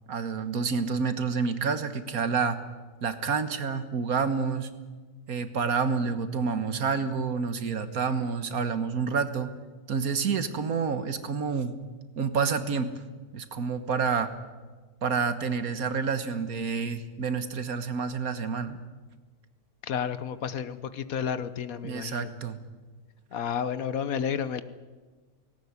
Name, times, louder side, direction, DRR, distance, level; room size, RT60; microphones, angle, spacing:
voice 1, 0.1-2.6 3.0-4.7 5.3-9.5 9.9-11.7 12.2-12.9 13.3-14.3 15.0-18.8 21.8-22.6, right 5 dB, 75° right, 10 dB, 1.8 m, -28 dB
voice 2, 19.8-22.3 23.3-24.6, left 7 dB, 70° left, 13 dB, 1.3 m, -31 dB
18.0 x 18.0 x 9.6 m, 1.4 s
omnidirectional pair, 1.6 m